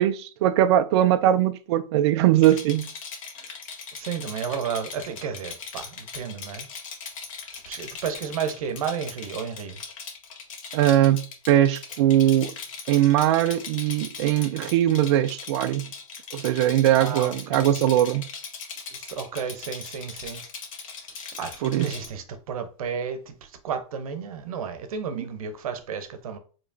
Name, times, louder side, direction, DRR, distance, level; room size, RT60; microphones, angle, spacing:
voice 1, 0.0-2.9 10.7-12.5 12.9-15.9 16.3-18.3 21.6-21.9, right 12 dB, 50° right, 0.4 m, -21 dB
Rattle, 2.4-22.1, left 5 dB, 65° left, 1.2 m, -39 dB
voice 2, 3.9-6.7 7.5-9.8 16.9-17.7 18.9-20.4 21.4-26.4, right 7 dB, 75° right, 0.9 m, -32 dB
4.9 x 3.0 x 2.7 m
supercardioid pair, 155°, 18 cm